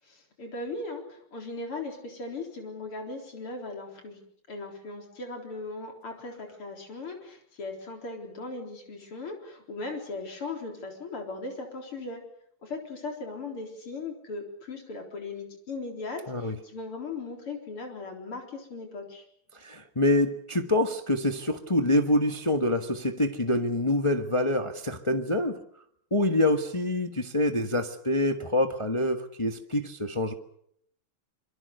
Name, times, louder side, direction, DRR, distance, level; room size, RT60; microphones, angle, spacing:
voice 1, 0.0-4.2 4.5-12.2 12.6-19.2, left 3 dB, 80° left, 2 dB, 4.9 m, -38 dB
voice 2, 19.6-25.6 26.1-30.3, left 1 dB, 15° left, 6 dB, 1.1 m, -26 dB
26.5 x 24.5 x 6.6 m, 0.67 s
omnidirectional pair, 2.4 m